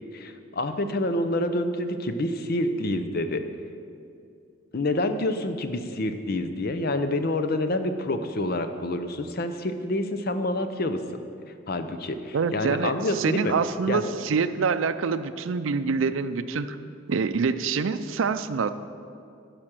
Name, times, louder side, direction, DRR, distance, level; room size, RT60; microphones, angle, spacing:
voice 1, 0.1-3.4 4.7-11.0 11.7-13.5 13.9-14.0, left 1 dB, 50° left, 9 dB, 0.6 m, -27 dB
voice 2, 12.3-16.7 17.1-18.7, right 5 dB, 75° right, 12 dB, 0.5 m, -26 dB
12.5 x 5.1 x 7.4 m, 2.4 s
head